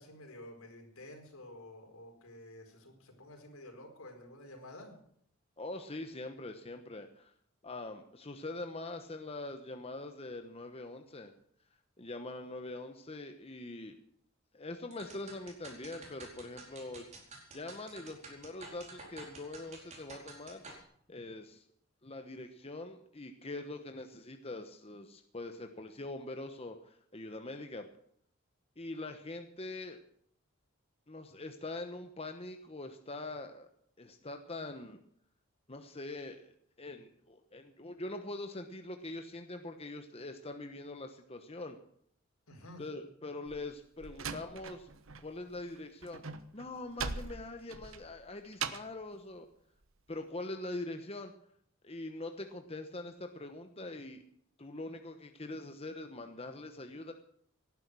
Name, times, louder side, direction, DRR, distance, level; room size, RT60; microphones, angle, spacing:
voice 1, 0.0-4.9 42.5-42.8, left 1 dB, 80° left, 3 dB, 4.7 m, -51 dB
voice 2, 5.6-7.3 7.6-11.3 12.0-14.0 14.5-17.0 17.5-20.8 21.1-21.6 22.0-27.9 28.8-30.0 31.1-33.7 34.0-35.0 35.7-36.5 36.8-41.8 42.8-44.9 45.2-46.2 46.5-49.5 50.1-51.3 51.8-54.2 54.6-57.1, left 2 dB, 30° left, 6 dB, 1.1 m, -43 dB
sound 1, 14.9-20.8, right 3 dB, 35° right, 4.7 m, -51 dB
Slam, 43.5-45.3 45.5-49.0, right 5 dB, 70° right, 1.1 m, -41 dB
18.0 x 11.0 x 6.2 m, 0.66 s
head